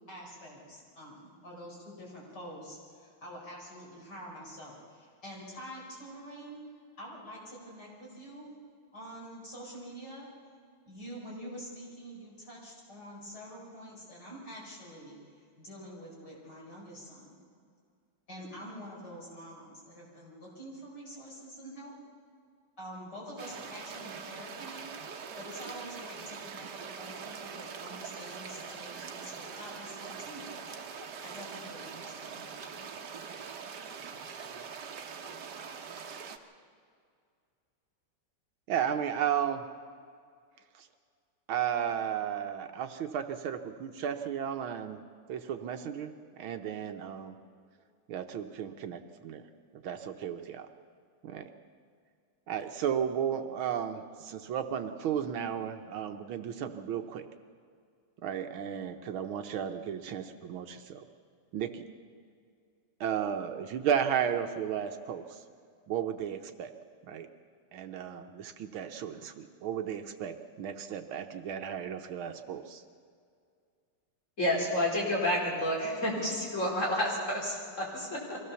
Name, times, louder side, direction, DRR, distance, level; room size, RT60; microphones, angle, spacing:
voice 1, 0.1-6.6 7.0-8.5 8.9-10.3 10.9-15.2 15.6-17.4 18.3-21.9 22.8-24.9 25.4-30.7 31.2-32.9, equal, 50° left, -4 dB, 5.7 m, -46 dB
sound 1, 23.4-36.4, right 6 dB, 55° right, 1.5 m, -43 dB
voice 2, 38.7-39.6 40.8-40.9 41.5-45.0 45.3-47.3 48.1-49.4 49.8-50.7 51.2-51.5 52.5-57.2 58.2-61.0 61.5-61.8 63.0-65.4 65.9-66.7 67.1-67.3 67.7-72.8, right 8 dB, 70° right, 7 dB, 1.6 m, -34 dB
voice 3, 74.4-78.4, left 1 dB, 35° left, -3 dB, 4.6 m, -30 dB
23.0 x 16.5 x 6.9 m, 2.2 s
omnidirectional pair, 2.4 m